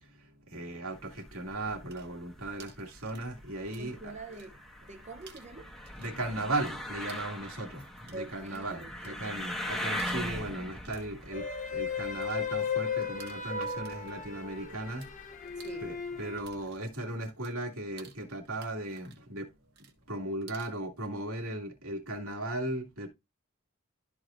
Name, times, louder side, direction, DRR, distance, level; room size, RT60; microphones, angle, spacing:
voice 1, 0.0-4.1 6.0-15.1 15.8-19.5 20.1-23.1, right 1 dB, 85° right, 2.3 m, -37 dB
sound 1, 0.9-16.8, left 1 dB, ahead, 1.3 m, -42 dB
sound 2, 1.8-3.9 4.2-4.9 5.2-15.1 15.4-20.8, right 7 dB, 50° right, 1.6 m, -57 dB
voice 2, 3.8-5.7 8.1-9.1 15.6-15.9, right 2 dB, 35° right, 0.7 m, -45 dB
sound 3, 11.3-16.4, left 6 dB, 35° left, 0.7 m, -35 dB
12.5 x 4.8 x 2.5 m
head